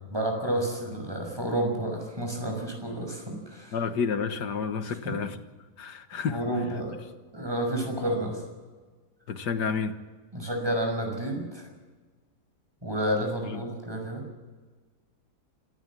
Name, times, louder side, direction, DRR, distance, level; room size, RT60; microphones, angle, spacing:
voice 1, 0.1-3.7 5.0-5.1 6.3-6.9 7.3-8.4 10.3-11.6 12.8-14.2, right 1 dB, 15° right, 2 dB, 6.1 m, -30 dB
voice 2, 3.7-5.4 5.8-6.8 9.3-10.0 13.5-13.6, left 6 dB, 80° left, 9 dB, 2.0 m, -30 dB
27.0 x 16.0 x 7.5 m, 1.4 s
omnidirectional pair, 1.8 m